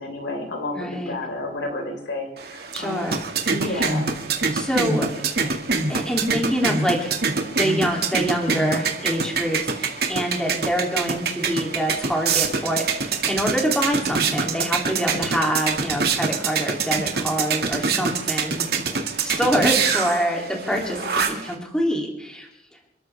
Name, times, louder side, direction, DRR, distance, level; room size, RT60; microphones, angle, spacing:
voice 1, 0.0-3.1 3.5-4.1 15.3-15.5 18.6-19.0, left 2 dB, 80° left, 2 dB, 4.4 m, -31 dB
voice 2, 0.7-1.1 2.7-3.2 3.6-3.9 4.5-5.1 5.4-5.5 5.9-7.2 7.6-18.7 19.2-22.5, equal, 5° left, 0 dB, 2.9 m, -25 dB
sound 1, 2.4-21.5, right 5 dB, 55° right, 2.0 m, -25 dB
28.0 x 13.0 x 3.5 m, 0.83 s
head